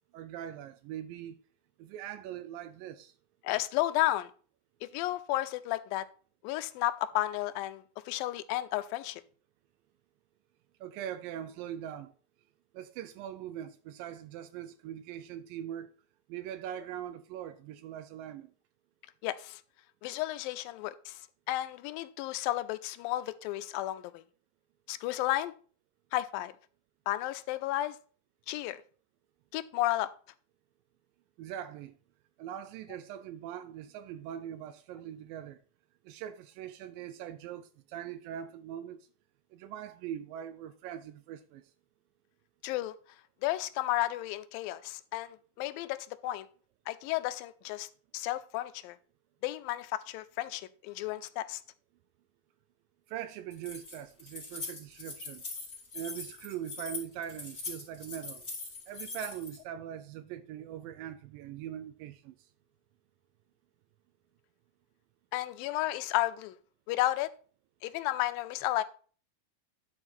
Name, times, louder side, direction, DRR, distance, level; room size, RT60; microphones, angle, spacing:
voice 1, 0.1-1.4 1.8-3.1 10.8-12.1 12.7-15.9 16.3-18.5 31.4-32.0 32.4-35.6 36.0-39.1 39.5-41.6 53.1-55.4 55.9-58.5 58.9-62.5, right 10 dB, 80° right, 2.2 m, -42 dB
voice 2, 3.4-4.3 4.9-6.1 6.4-9.2 19.2-19.6 20.0-21.2 21.5-24.2 24.9-25.5 26.1-26.5 27.1-28.0 28.5-28.8 29.5-30.1 42.6-42.9 43.4-46.0 46.2-46.5 46.9-47.9 48.1-49.0 49.4-51.6 65.3-66.6 66.9-67.3 67.8-68.8, left 15 dB, 85° left, 2.3 m, -32 dB
Keys jangling, 53.5-59.6, left 3 dB, 20° left, 3.0 m, -42 dB
11.0 x 4.8 x 4.3 m
omnidirectional pair, 4.1 m